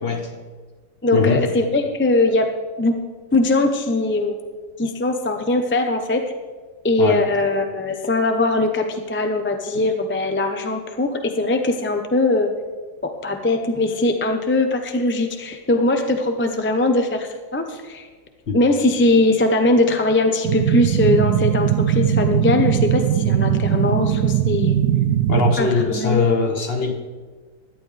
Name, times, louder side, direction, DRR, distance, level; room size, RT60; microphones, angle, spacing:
voice 1, 0.0-0.3 1.1-1.5 7.0-7.2 18.5-18.6 25.3-26.9, left 4 dB, 45° left, 5 dB, 1.0 m, -21 dB
voice 2, 1.0-2.5 2.8-2.9 3.3-4.3 4.8-6.2 6.8-12.5 13.0-18.1 18.5-24.8 25.6-26.3, left 2 dB, 15° left, 5 dB, 0.5 m, -20 dB
sound 1, 20.4-25.5, right 10 dB, 80° right, 1.1 m, -19 dB
17.0 x 11.5 x 3.4 m, 1.4 s
omnidirectional pair, 1.7 m